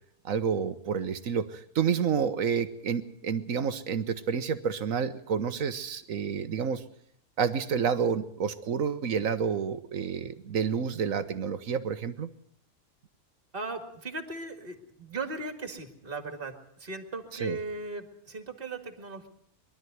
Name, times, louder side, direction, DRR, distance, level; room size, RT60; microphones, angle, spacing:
voice 1, 0.2-6.8 7.4-12.3 17.4-17.6, right 6 dB, 55° right, 12 dB, 1.5 m, -29 dB
voice 2, 13.5-19.3, right 3 dB, 35° right, 7 dB, 2.3 m, -38 dB
23.0 x 12.5 x 9.4 m, 0.67 s
omnidirectional pair, 1.7 m